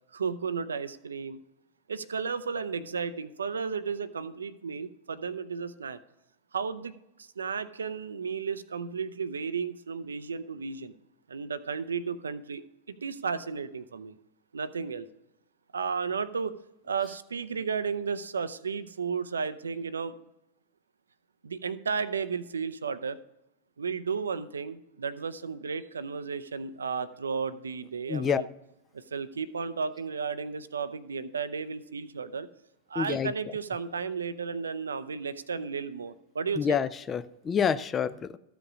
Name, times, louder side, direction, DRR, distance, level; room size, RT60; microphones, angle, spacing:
voice 1, 0.1-1.4 1.9-6.0 6.5-6.9 7.2-10.9 11.3-12.6 12.9-14.1 14.5-15.1 15.7-16.6 16.8-20.1 21.4-23.2 23.8-28.5 28.9-32.5 32.9-36.8, right 5 dB, 70° right, 14 dB, 0.5 m, -33 dB
voice 2, 28.1-28.4 33.0-33.3 36.6-38.4, left 7 dB, 25° left, 14 dB, 0.4 m, -28 dB
13.5 x 5.1 x 6.0 m, 0.89 s
figure-of-eight pair, 90°, 0 cm